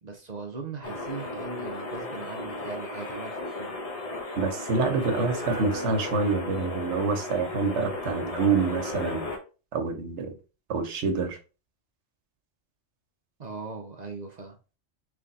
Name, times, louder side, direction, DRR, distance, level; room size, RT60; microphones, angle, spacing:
voice 1, 0.0-3.8 13.4-14.6, right 4 dB, 45° right, 0.6 m, -39 dB
sound 1, 0.8-9.4, left 2 dB, 35° left, 0.9 m, -35 dB
voice 2, 4.4-9.3 9.7-10.3 10.7-11.4, right 4 dB, 70° right, 1.1 m, -27 dB
3.4 x 3.3 x 3.9 m
omnidirectional pair, 1.2 m